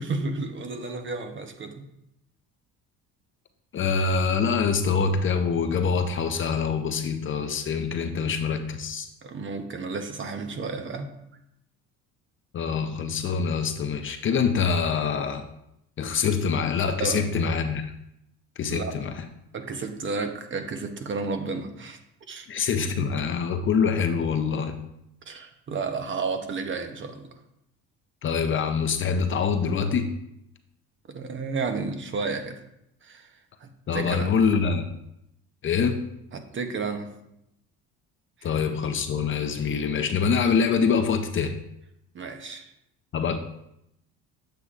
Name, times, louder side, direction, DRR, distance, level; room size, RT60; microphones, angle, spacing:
voice 1, 0.0-1.9 9.2-11.1 17.0-17.2 18.7-19.0 19.5-22.0 22.3-22.5 23.0-23.1 25.3-27.3 31.1-32.6 33.0-33.3 33.6-34.4 36.3-37.1 38.4-38.5 42.1-42.7, right 4 dB, 35° right, 6 dB, 0.9 m, -32 dB
voice 2, 3.7-9.1 12.5-15.5 16.0-17.8 18.6-19.2 22.5-24.8 28.2-30.1 33.9-34.9 35.6-36.0 38.4-41.5 43.1-43.4, left 6 dB, 35° left, 7 dB, 0.6 m, -25 dB
7.8 x 6.8 x 2.5 m, 0.81 s
cardioid pair, 105°, 33 cm